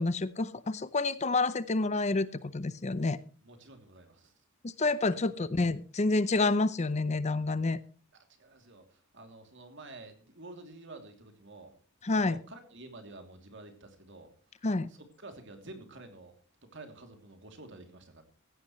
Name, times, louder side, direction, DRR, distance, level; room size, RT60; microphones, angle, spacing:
voice 1, 0.0-3.2 4.6-7.8 12.0-12.4 14.6-14.9, left 3 dB, 30° left, 16 dB, 0.6 m, -28 dB
voice 2, 3.4-4.3 8.4-11.7 12.2-14.3 14.9-16.4 16.6-18.2, right 2 dB, 60° right, 5 dB, 2.9 m, -50 dB
16.0 x 15.5 x 3.1 m, 0.36 s
head